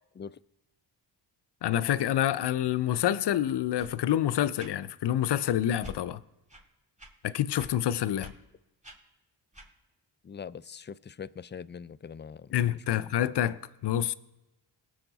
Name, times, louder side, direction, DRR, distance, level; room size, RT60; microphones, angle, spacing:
voice 1, 1.6-6.2 7.2-8.3 12.5-14.1, left 11 dB, 65° left, 0.7 m, -27 dB
sound 1, 3.8-3.9 4.5-4.7 5.8-6.0 6.5-6.6 7.0-7.1 7.6-7.7 8.2-8.3 8.8-9.0 9.5-9.7, equal, 15° right, 3.2 m, -46 dB
voice 2, 10.2-12.6 12.9-13.1, left 6 dB, 25° left, 0.4 m, -42 dB
19.5 x 6.6 x 4.0 m
cardioid pair, 60°, 45 cm